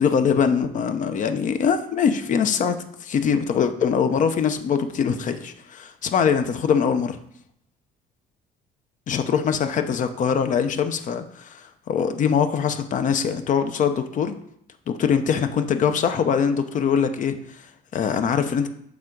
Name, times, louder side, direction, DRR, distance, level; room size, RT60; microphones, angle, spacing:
voice 1, 0.0-7.2 9.1-14.3 14.9-18.7, left 7 dB, 50° left, 8 dB, 0.7 m, -23 dB
7.3 x 3.7 x 4.6 m, 0.71 s
cardioid pair, 110°, 17 cm